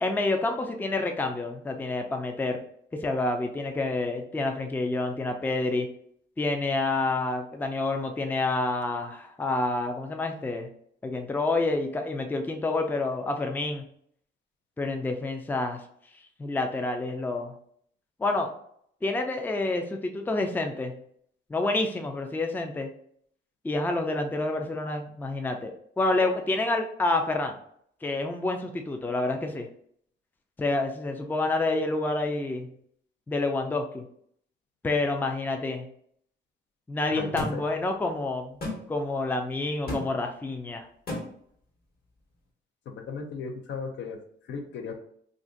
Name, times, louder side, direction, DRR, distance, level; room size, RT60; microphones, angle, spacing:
voice 1, 0.0-2.6 3.0-5.9 6.4-10.7 11.0-13.8 14.8-15.8 16.4-17.5 18.2-18.5 19.0-21.0 21.5-22.9 23.6-27.5 28.0-29.7 30.6-32.7 33.3-34.1 34.8-35.9 36.9-38.5 38.9-40.9, left 2 dB, 10° left, 5 dB, 0.4 m, -28 dB
voice 2, 37.1-37.6 42.9-44.2 44.5-45.0, left 5 dB, 65° left, 4 dB, 0.6 m, -36 dB
sound 1, 37.4-37.5 38.6-38.8 39.9-40.0 41.1-41.2, left 1 dB, 50° left, 1.2 m, -31 dB
2.5 x 2.5 x 3.7 m, 0.65 s
cardioid pair, 90°, 20 cm